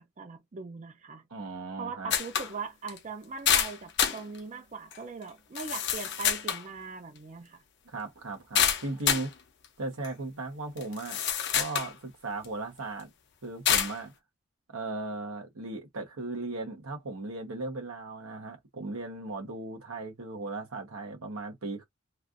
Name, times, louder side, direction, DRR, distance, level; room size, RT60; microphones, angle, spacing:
voice 1, 0.0-1.2 1.8-7.6, right 4 dB, 35° right, 0.4 m, -40 dB
voice 2, 1.3-2.1 7.8-9.3 9.8-11.2 11.5-13.1 13.4-14.1 14.7-21.8, right 2 dB, 90° right, 1.1 m, -37 dB
sound 1, 2.1-2.5 2.9-3.0 3.5-4.2 4.9-5.0 5.6-6.6 8.5-9.3 10.0-10.1 10.8-11.9 12.4-12.5 13.7-14.0, left 8 dB, 55° left, 0.7 m, -27 dB
3.2 x 2.5 x 2.5 m
head